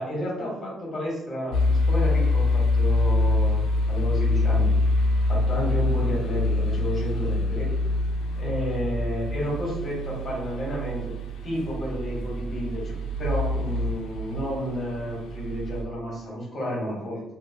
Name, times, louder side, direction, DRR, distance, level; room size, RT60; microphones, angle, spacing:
voice 1, 0.0-3.6 3.9-7.7 8.3-11.1 11.4-17.2, equal, 30° left, -3 dB, 1.3 m, -31 dB
sound 1, 1.5-15.8, left 2 dB, 90° left, 0.4 m, -25 dB
2.9 x 2.4 x 2.7 m, 0.91 s
cardioid pair, 135°, 0 cm